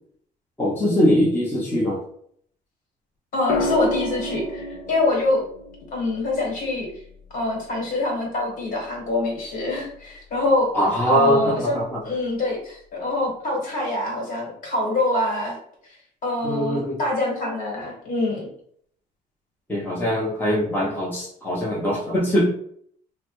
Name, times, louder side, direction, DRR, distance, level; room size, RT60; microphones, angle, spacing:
voice 1, 0.6-2.0 10.7-12.0 16.4-17.0 19.7-22.5, equal, 10° left, -5 dB, 0.9 m, -22 dB
voice 2, 3.3-5.4 5.9-6.9 7.3-10.7 11.0-11.8 12.0-15.5 16.2-18.5, left 2 dB, 55° left, -1 dB, 1.5 m, -25 dB
sound 1, 3.5-7.6 9.3-9.7, left 1 dB, 85° left, 0.5 m, -31 dB
3.2 x 2.1 x 3.0 m, 0.63 s
cardioid pair, 110°, 17 cm